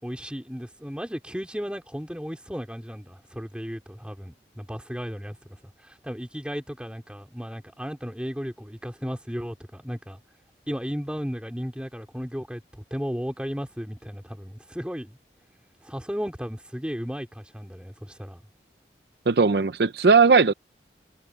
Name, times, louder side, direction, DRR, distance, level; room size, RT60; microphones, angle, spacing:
voice 1, 0.0-10.2 10.7-15.2 15.8-18.4, equal, 5° right, 3.8 m, -35 dB
voice 2, 19.3-20.5, right 4 dB, 60° right, 0.6 m, -18 dB
head